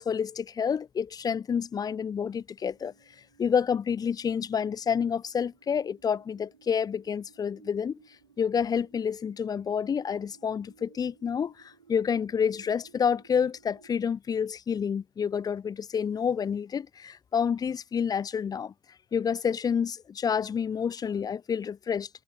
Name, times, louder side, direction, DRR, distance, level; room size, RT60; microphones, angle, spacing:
voice 1, 0.0-2.9 3.4-8.0 8.4-18.7 19.1-22.1, left 7 dB, 25° left, 0.6 m, -29 dB
sound 1, 2.4-14.0, right 6 dB, 85° right, 2.5 m, -61 dB
figure-of-eight pair, 70°, 15 cm